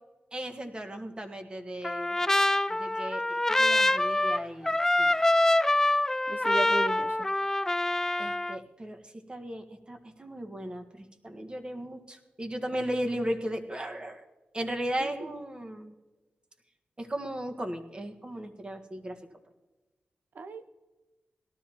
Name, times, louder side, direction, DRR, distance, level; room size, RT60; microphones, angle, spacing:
voice 1, 0.3-2.2 2.7-5.1 8.2-9.0 9.3-14.2 14.5-15.9 17.0-19.2, right 1 dB, 25° right, 5 dB, 1.6 m, -36 dB
Trumpet, 1.8-8.6, left 1 dB, 15° left, 0.3 m, -25 dB
voice 2, 6.3-7.3 15.0-15.3 20.3-20.7, right 3 dB, 70° right, 11 dB, 0.9 m, -36 dB
18.0 x 13.0 x 3.0 m, 1.1 s
cardioid pair, 55°, 3 cm